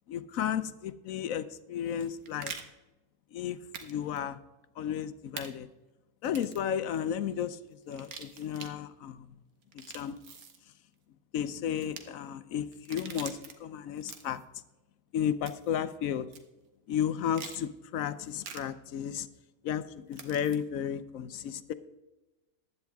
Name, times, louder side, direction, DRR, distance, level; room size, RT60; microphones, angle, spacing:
voice 1, 0.1-2.5 3.3-4.4 4.8-5.7 6.2-9.4 9.7-10.2 11.3-14.4 15.1-16.3 16.9-19.3 19.6-21.7, left 9 dB, 70° left, 13 dB, 1.0 m, -33 dB
sound 1, 1.9-2.6 3.7-3.9 4.2-4.3 5.4-5.5 6.2-6.7 7.9-8.7 9.6-10.6 11.8-12.0 12.7-13.5 14.0-14.4 15.5-15.8 16.3-16.4 17.3-17.6 18.4-18.6 20.1-20.6, right 6 dB, 75° right, 1.6 m, -44 dB
15.0 x 11.0 x 3.5 m, 1.1 s
omnidirectional pair, 1.5 m